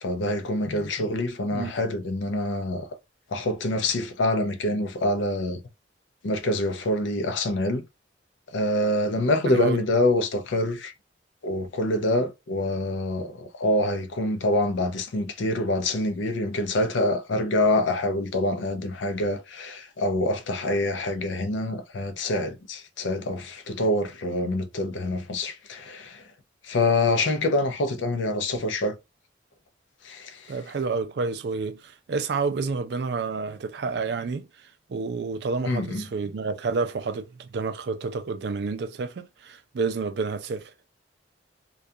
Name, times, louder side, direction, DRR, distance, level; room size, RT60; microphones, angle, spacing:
voice 1, 0.0-2.9 3.3-5.6 6.2-7.8 8.5-10.9 11.4-26.3 26.6-29.0 30.0-30.6 35.6-36.1, left 1 dB, 75° left, 0.5 m, -26 dB
voice 2, 9.5-9.8 30.5-34.5 34.9-40.7, right 4 dB, 60° right, 0.4 m, -29 dB
2.3 x 2.3 x 2.6 m
head